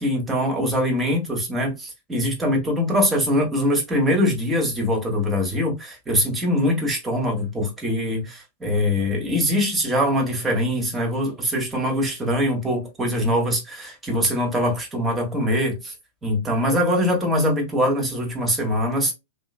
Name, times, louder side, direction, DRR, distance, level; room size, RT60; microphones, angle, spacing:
voice 1, 0.0-15.9 16.2-19.1, equal, 10° right, 1.6 m, -23 dB
3.1 x 2.9 x 2.4 m
hypercardioid pair, 110°, 0 cm